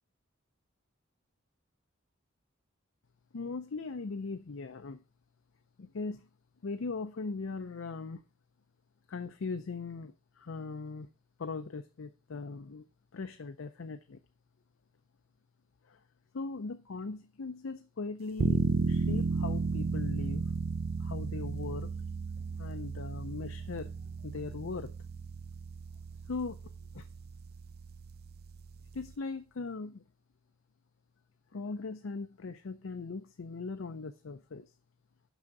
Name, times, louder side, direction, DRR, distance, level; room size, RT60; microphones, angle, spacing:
voice 1, 3.3-5.0 5.8-6.3 6.6-8.2 9.1-11.1 11.4-12.9 13.1-14.2 15.9-16.0 16.3-20.4 21.0-21.9 22.6-23.9 24.2-24.9 26.3-26.6 26.9-27.1 28.9-30.0 31.5-34.7, left 4 dB, 75° left, 8 dB, 0.5 m, -39 dB
sound 1, 18.4-29.1, right 4 dB, 50° right, 0.4 m, -34 dB
6.1 x 5.7 x 6.3 m, 0.33 s
head